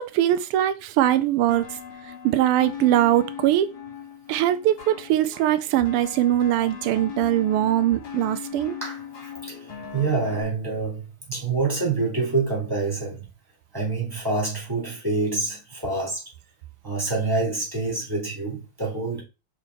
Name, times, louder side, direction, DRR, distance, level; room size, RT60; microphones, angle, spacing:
voice 1, 0.0-1.6 2.0-3.7 4.3-8.8, right 13 dB, 85° right, 1.5 m, -21 dB
sound 1, 1.5-10.4, left 8 dB, 60° left, 2.7 m, -39 dB
voice 2, 9.9-13.3 13.7-16.2 16.8-19.2, right 3 dB, 10° right, 3.1 m, -26 dB
5.7 x 4.3 x 4.1 m
omnidirectional pair, 2.4 m